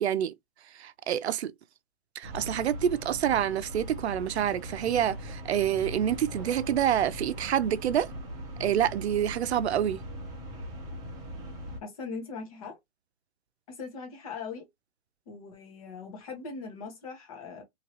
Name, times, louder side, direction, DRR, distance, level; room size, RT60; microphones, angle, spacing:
voice 1, 0.0-0.3 0.8-1.5 2.2-8.1 8.6-10.0, right 10 dB, 80° right, 0.5 m, -27 dB
sound 1, 2.2-11.8, equal, 10° right, 0.8 m, -40 dB
voice 2, 11.8-12.8 13.7-14.7 15.3-17.6, left 4 dB, 35° left, 1.1 m, -40 dB
2.9 x 2.7 x 2.9 m
hypercardioid pair, 160°, 32 cm